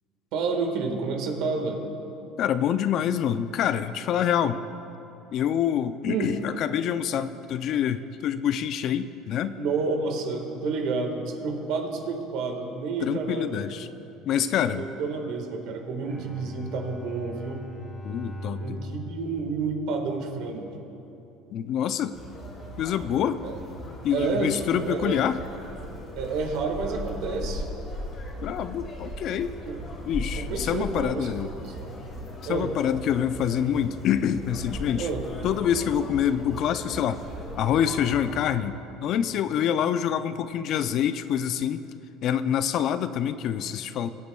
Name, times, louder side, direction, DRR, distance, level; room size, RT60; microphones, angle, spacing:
voice 1, 0.3-1.9 6.1-6.3 9.6-13.6 14.7-17.6 18.6-20.8 23.4-23.6 24.1-25.2 26.1-27.7 29.7-29.8 30.4-32.0 32.4-32.7 35.0-35.2, right 4 dB, 70° right, 3 dB, 1.5 m, -30 dB
voice 2, 2.4-4.6 5.3-9.6 13.0-13.9 14.2-14.9 18.0-18.8 21.5-22.2 22.8-23.4 24.0-25.4 28.4-29.6 30.1-31.5 32.4-35.1 35.4-37.2 37.6-38.7 39.0-41.8 42.2-44.1, left 9 dB, 55° left, 12 dB, 0.4 m, -26 dB
Bowed string instrument, 16.0-20.4, left 1 dB, ahead, 2.2 m, -40 dB
Conversation, 22.1-38.5, equal, 35° left, 2.1 m, -38 dB
21.0 x 8.4 x 2.3 m, 2.9 s
cardioid pair, 120°, 0 cm